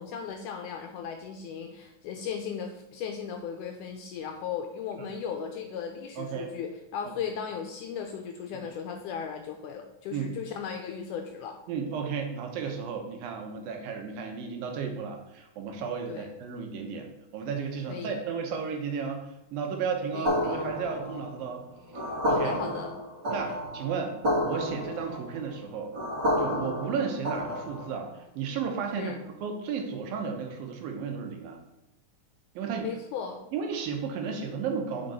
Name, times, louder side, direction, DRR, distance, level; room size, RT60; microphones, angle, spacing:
voice 1, 0.0-11.6 16.1-16.3 17.9-18.2 20.1-20.6 22.3-22.9 29.0-29.2 32.8-33.4, left 7 dB, 80° left, 4 dB, 1.9 m, -36 dB
voice 2, 6.2-6.5 7.1-7.2 10.1-10.3 11.7-21.6 22.3-22.6 23.3-25.9 26.4-29.1 29.4-31.6 32.6-32.9 33.5-35.1, right 6 dB, 90° right, 3 dB, 2.8 m, -33 dB
sound 1, 20.2-28.0, equal, 30° right, 3.4 m, -30 dB
7.7 x 6.0 x 4.2 m, 0.92 s
omnidirectional pair, 4.0 m